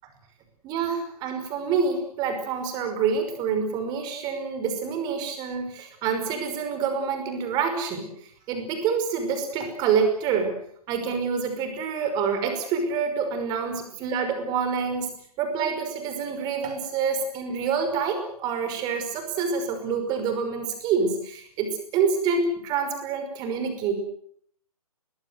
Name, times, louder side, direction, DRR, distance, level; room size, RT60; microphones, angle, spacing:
voice 1, 0.6-8.1 8.5-10.5 10.9-15.1 15.4-23.9, right 5 dB, 20° right, 7 dB, 5.5 m, -27 dB
24.5 x 21.0 x 8.0 m, 0.65 s
figure-of-eight pair, 130°, 19 cm